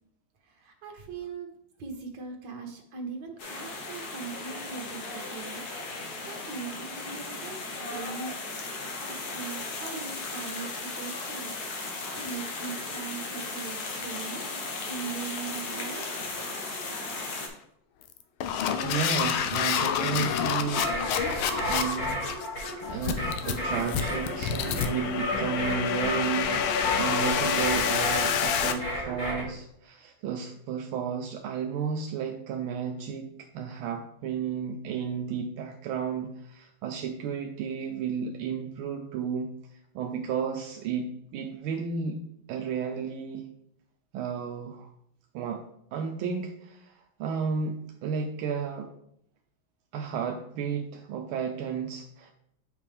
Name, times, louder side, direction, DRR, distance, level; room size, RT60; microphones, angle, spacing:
voice 1, 0.5-1.5 1.8-5.6 6.0-8.3 9.1-11.9 12.1-14.5 14.9-16.0, right 5 dB, 60° right, 3 dB, 1.7 m, -40 dB
sound 1, 3.4-17.5, left 3 dB, 55° left, 1.4 m, -36 dB
sound 2, 15.0-15.2 15.5-15.8 16.3-16.6 17.1-17.4 18.0-28.7, left 8 dB, 85° left, 1.5 m, -28 dB
voice 2, 18.8-21.0 21.4-22.3 22.9-39.5 39.9-42.2 42.5-43.4 44.1-44.9 45.3-45.6 45.9-48.9 49.9-52.3, right 6 dB, 80° right, 3 dB, 1.4 m, -33 dB
sound 3, 20.7-29.5, left 1 dB, 40° left, 2.5 m, -33 dB
7.4 x 4.7 x 3.4 m, 0.74 s
omnidirectional pair, 2.2 m